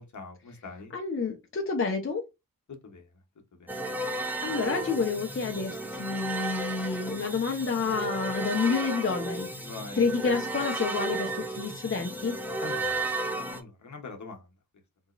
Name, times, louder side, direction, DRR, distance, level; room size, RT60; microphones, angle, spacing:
voice 1, 0.0-0.9 2.7-3.2 3.5-3.7 9.6-10.0 12.6-13.1 13.5-14.5, left 4 dB, 55° left, 1.1 m, -44 dB
voice 2, 0.9-2.2 4.4-9.7 10.0-12.4, left 5 dB, 40° left, 0.8 m, -29 dB
sound 1, 3.7-13.6, right 2 dB, 5° right, 0.8 m, -34 dB
3.7 x 2.9 x 2.5 m
cardioid pair, 55°, 34 cm